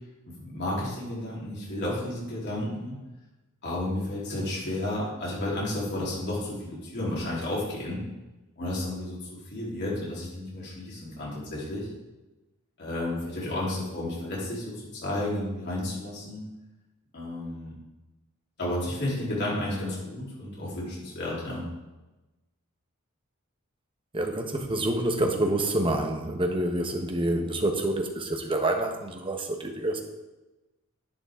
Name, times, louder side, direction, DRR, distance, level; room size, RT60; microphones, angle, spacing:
voice 1, 0.3-3.0 3.6-8.0 8.6-9.2 9.5-11.9 12.8-14.7 15.0-16.4 17.1-17.7 18.6-21.7, left 1 dB, 55° left, -6 dB, 3.9 m, -32 dB
voice 2, 24.1-30.0, right 1 dB, 25° right, 3 dB, 1.2 m, -27 dB
10.5 x 10.0 x 3.8 m, 1.1 s
head